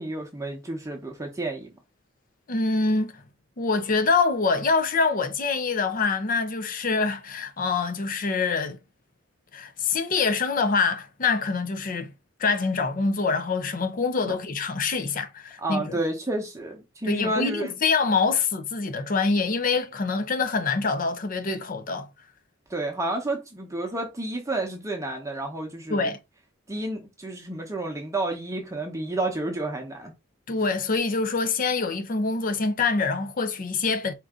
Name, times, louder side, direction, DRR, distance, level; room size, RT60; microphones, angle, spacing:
voice 1, 0.0-1.7 14.3-14.4 15.6-17.8 22.7-26.1 26.7-30.1 30.6-30.7, right 2 dB, 15° right, 0.8 m, -30 dB
voice 2, 2.5-3.2 3.6-8.8 9.5-12.1 12.4-16.0 17.1-22.1 25.9-26.2 30.5-34.1, left 4 dB, 45° left, 0.6 m, -25 dB
4.4 x 2.6 x 3.7 m
head